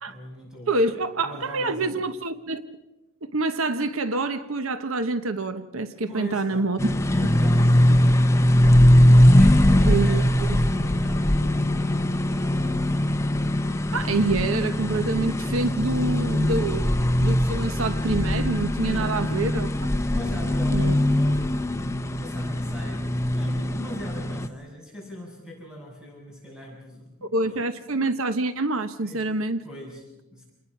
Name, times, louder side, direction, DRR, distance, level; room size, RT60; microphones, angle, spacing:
voice 1, 0.1-0.8 1.1-1.9 6.0-6.7 7.1-9.1 9.4-13.0 18.8-19.2 20.1-27.6 29.0-29.3 29.6-30.5, left 1 dB, 5° right, -2 dB, 6.2 m, -40 dB
voice 2, 0.7-2.6 3.2-6.8 9.9-10.2 10.5-10.6 13.9-16.9 17.2-19.9 20.7-20.9 27.2-29.6, right 3 dB, 80° right, 10 dB, 1.0 m, -26 dB
sound 1, 6.8-24.5, left 1 dB, 15° left, 0.9 m, -21 dB
28.5 x 20.0 x 5.9 m, 1.0 s
head